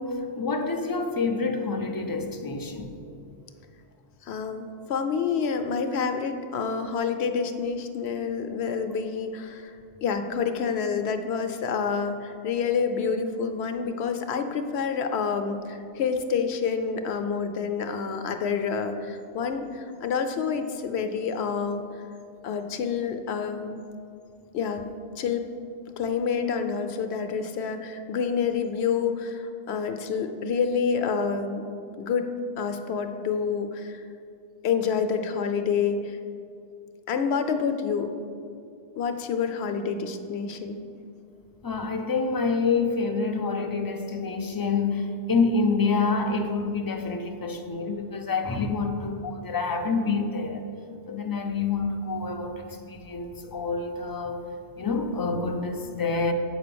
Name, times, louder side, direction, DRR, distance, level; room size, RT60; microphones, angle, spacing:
voice 1, 0.0-3.0 41.6-50.7 51.1-54.4 54.8-56.3, left 4 dB, 30° left, 4 dB, 0.4 m, -27 dB
voice 2, 4.2-9.7 10.0-21.8 22.4-23.8 24.5-24.9 25.2-25.5 26.0-31.7 32.0-34.0 34.6-36.2 37.1-38.1 39.0-40.8, left 6 dB, 70° left, 7 dB, 0.9 m, -28 dB
8.0 x 5.2 x 6.8 m, 2.5 s
omnidirectional pair, 1.2 m